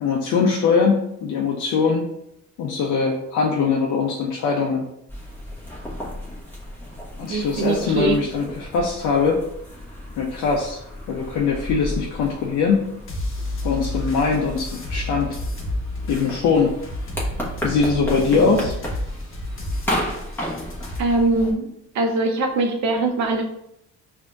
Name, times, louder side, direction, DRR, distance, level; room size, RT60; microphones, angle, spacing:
voice 1, 0.0-2.1 2.6-4.8 7.2-9.4 10.2-10.8 11.1-12.9 13.6-15.4 16.1-16.7 17.6-18.7, left 5 dB, 80° left, -1 dB, 0.6 m, -21 dB
sound 1, 5.1-21.5, equal, 5° left, 1.2 m, -33 dB
voice 2, 7.3-8.2 21.0-21.7 21.9-23.4, right 2 dB, 65° right, 3 dB, 0.8 m, -22 dB
sound 2, 13.1-21.0, left 1 dB, 45° left, 1.1 m, -31 dB
5.0 x 2.7 x 2.4 m, 0.78 s
cardioid pair, 90°, 30 cm